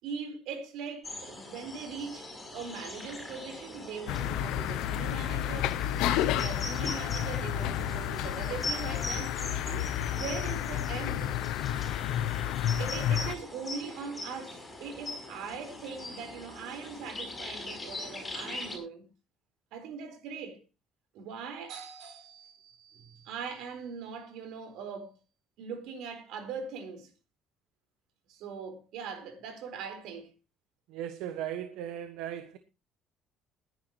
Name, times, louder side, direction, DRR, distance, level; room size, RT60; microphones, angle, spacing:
voice 1, 0.0-9.3 9.7-11.3 12.8-19.0 19.7-20.6 21.1-25.2 25.6-27.1 28.3-30.3, right 5 dB, 70° right, 4.3 m, -41 dB
sound 1, 1.0-18.8, left 2 dB, 10° left, 5.8 m, -42 dB
sound 2, 2.5-10.3, right 3 dB, 25° right, 7.6 m, -53 dB
sound 3, 4.1-13.3, left 11 dB, 75° left, 0.7 m, -31 dB
voice 2, 30.9-32.6, right 10 dB, 85° right, 1.3 m, -37 dB
20.5 x 10.5 x 3.0 m
cardioid pair, 175°, 0 cm